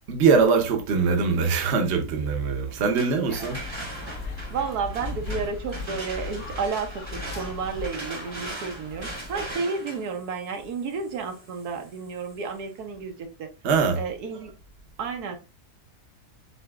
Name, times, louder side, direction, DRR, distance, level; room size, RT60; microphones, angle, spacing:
voice 1, 0.1-3.6 13.6-14.0, right 5 dB, 50° right, 1.0 m, -22 dB
sound 1, 2.7-12.5, right 2 dB, 20° right, 0.9 m, -40 dB
sound 2, 3.3-9.5, left 3 dB, 65° left, 1.6 m, -37 dB
voice 2, 4.5-13.5 14.0-14.5 15.0-15.4, right 5 dB, 75° right, 1.3 m, -31 dB
7.8 x 2.7 x 2.4 m
omnidirectional pair, 1.7 m